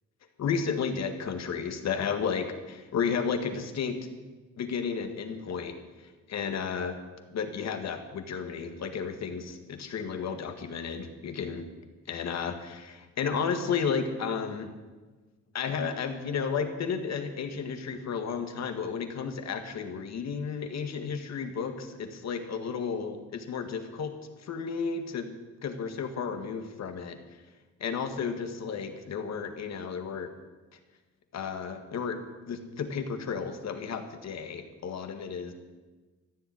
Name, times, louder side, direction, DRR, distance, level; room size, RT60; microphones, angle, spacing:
voice 1, 0.4-4.0 4.6-7.0 7.3-11.7 12.1-14.7 15.5-24.1 24.4-25.3 25.6-27.2 27.8-30.3 31.3-32.2 32.5-35.5, left 6 dB, 60° left, 7 dB, 1.8 m, -33 dB
15.0 x 7.2 x 9.7 m, 1.3 s
cardioid pair, 90°, 30 cm